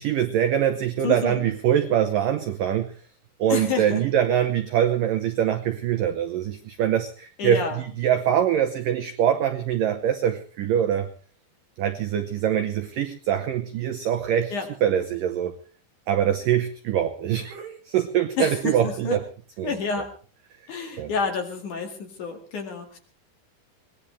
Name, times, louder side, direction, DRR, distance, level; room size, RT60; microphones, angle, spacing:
voice 1, 0.0-2.9 3.4-11.1 11.8-14.5 14.8-15.6 16.1-19.2 19.6-19.7 21.0-21.1, right 10 dB, 80° right, 7 dB, 2.0 m, -23 dB
voice 2, 1.0-1.4 3.5-4.0 7.4-7.8 14.5-14.7 18.4-19.2 19.6-20.1 20.7-23.0, left 5 dB, 50° left, 4 dB, 3.0 m, -29 dB
23.0 x 19.0 x 3.3 m, 0.39 s
omnidirectional pair, 5.3 m